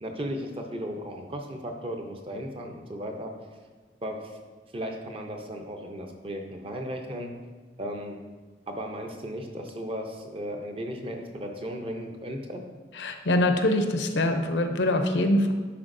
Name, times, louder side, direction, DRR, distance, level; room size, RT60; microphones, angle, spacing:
voice 1, 0.0-3.3 4.0-4.4 4.7-7.3 7.8-8.2 8.7-12.6, equal, 30° right, 3 dB, 0.6 m, -35 dB
voice 2, 13.0-15.5, left 1 dB, 70° left, 6 dB, 0.6 m, -24 dB
10.0 x 4.4 x 2.6 m, 1.4 s
head